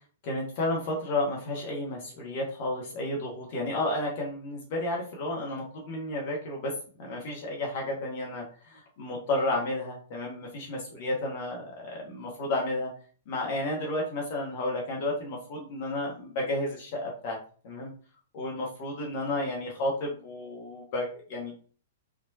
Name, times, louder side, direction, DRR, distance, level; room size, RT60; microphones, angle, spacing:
voice 1, 0.2-6.7 7.0-12.9 13.3-17.4 17.6-17.9 18.3-21.5, left 1 dB, 45° left, -1 dB, 0.8 m, -32 dB
3.0 x 2.2 x 2.6 m, 0.41 s
figure-of-eight pair, 105°, 0 cm